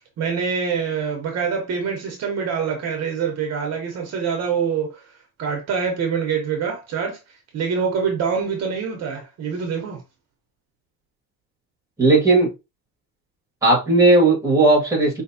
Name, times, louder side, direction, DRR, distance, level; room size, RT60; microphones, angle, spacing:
voice 1, 0.2-4.9 5.4-7.2 7.5-10.0, right 6 dB, 50° right, 1.2 m, -25 dB
voice 2, 12.0-12.5 13.6-15.2, right 2 dB, 10° right, 2.0 m, -16 dB
5.2 x 3.1 x 2.8 m
cardioid pair, 170°, 33 cm